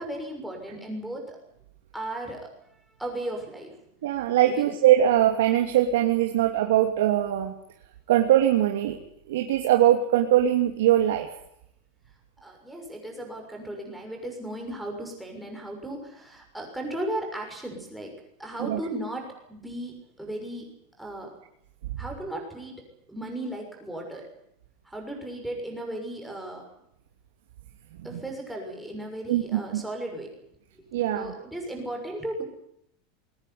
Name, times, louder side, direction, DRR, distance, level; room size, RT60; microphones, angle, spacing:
voice 1, 0.0-1.4 1.9-2.5 3.0-3.7 4.4-4.7 12.4-18.1 18.4-20.6 21.0-21.3 22.0-22.8 23.1-24.3 24.8-26.6 28.0-30.3 30.7-30.9 31.1-32.4, right 1 dB, ahead, 0 dB, 6.6 m, -36 dB
voice 2, 4.0-7.5 8.1-9.0 9.3-11.3 18.6-18.8 21.9-22.0 28.1-28.2 29.3-29.8 30.9-31.3, right 12 dB, 90° right, 3 dB, 3.0 m, -22 dB
22.5 x 18.0 x 9.7 m, 0.74 s
supercardioid pair, 175°, 0 cm